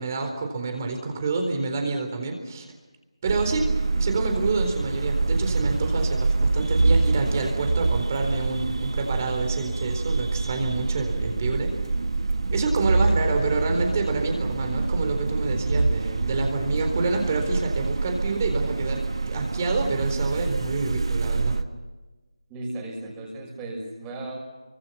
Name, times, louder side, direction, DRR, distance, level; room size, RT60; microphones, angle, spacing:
voice 1, 0.0-2.7 3.2-3.7 4.0-11.7 12.5-21.6, right 3 dB, 30° right, 4 dB, 4.1 m, -28 dB
sound 1, 3.2-21.6, right 3 dB, 60° right, 1.7 m, -26 dB
voice 2, 22.5-24.4, right 2 dB, 15° right, -1 dB, 5.8 m, -35 dB
29.5 x 24.5 x 5.9 m, 1.2 s
figure-of-eight pair, 165°, 3 cm